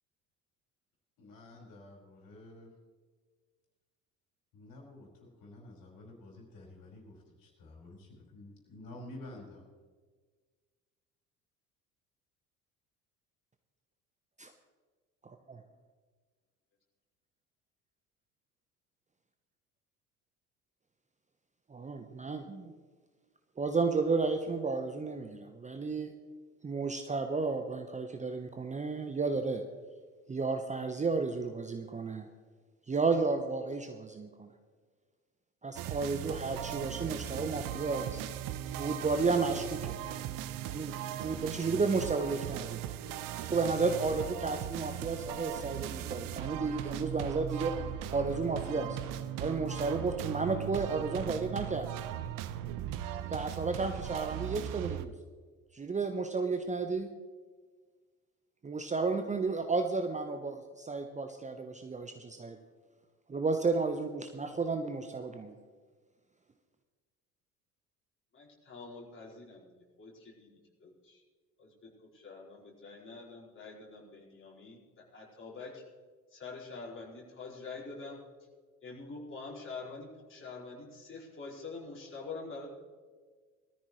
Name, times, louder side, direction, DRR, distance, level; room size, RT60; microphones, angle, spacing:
voice 1, 1.2-2.7 4.5-9.6, left 1 dB, 50° left, -1 dB, 5.0 m, -50 dB
voice 2, 15.2-15.6 21.7-22.7 23.6-26.1 26.6-29.6 30.3-32.2 32.9-34.5 35.6-38.2 38.8-40.0 40.7-42.8 43.4-47.7 48.1-49.0 49.4-51.9 53.3-55.1 55.7-57.1 58.6-62.6 63.3-65.6, right 4 dB, 15° right, 7 dB, 1.0 m, -32 dB
sound 1, 35.8-55.1, right 11 dB, 50° right, 0.8 m, -38 dB
voice 3, 68.3-69.7 70.0-70.5 70.8-71.2 71.6-75.8 76.3-78.2 78.8-82.7, left 4 dB, 25° left, -4 dB, 5.0 m, -46 dB
19.5 x 14.0 x 3.2 m, 1.5 s
figure-of-eight pair, 60°, 44 cm